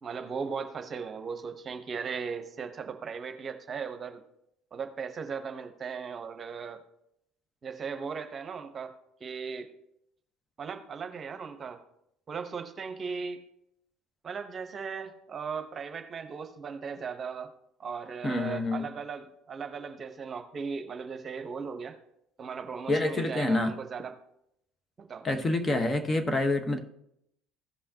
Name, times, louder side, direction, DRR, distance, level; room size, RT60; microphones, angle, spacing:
voice 1, 0.0-4.2 4.7-6.8 7.6-8.9 9.2-9.7 10.6-11.8 12.3-13.4 14.2-17.5 17.8-22.0 22.4-24.1 25.0-25.3, right 5 dB, 35° right, 1.0 m, -37 dB
voice 2, 18.2-18.9 22.9-23.8 25.2-26.8, left 2 dB, 25° left, 1.2 m, -27 dB
16.0 x 5.5 x 2.9 m
hypercardioid pair, 80°, 0 cm